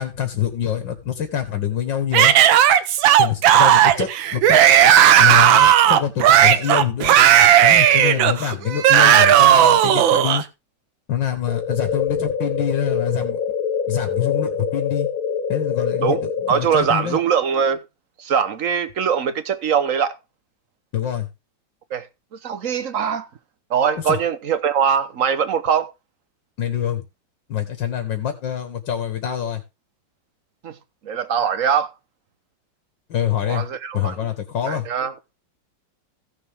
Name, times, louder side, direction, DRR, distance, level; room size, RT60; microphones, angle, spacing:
voice 1, 0.0-2.3 3.2-4.6 5.2-7.2 7.6-10.4 11.1-13.4 13.9-15.1 15.5-17.2 20.9-21.3 24.1-24.2 26.6-27.0 27.5-29.6 33.1-33.6 33.9-34.9, left 9 dB, 70° left, 2.1 m, -25 dB
Yell / Screaming, 2.1-10.4, right 10 dB, 85° right, 1.6 m, -13 dB
sound 1, 11.5-16.5, left 6 dB, 55° left, 1.4 m, -25 dB
voice 2, 16.5-17.8 18.2-20.2 21.9-22.1 22.4-23.3 23.7-25.9 30.6-30.8 31.0-31.9 33.4-34.1 34.7-35.1, right 7 dB, 55° right, 1.1 m, -21 dB
16.0 x 6.8 x 3.6 m
omnidirectional pair, 2.1 m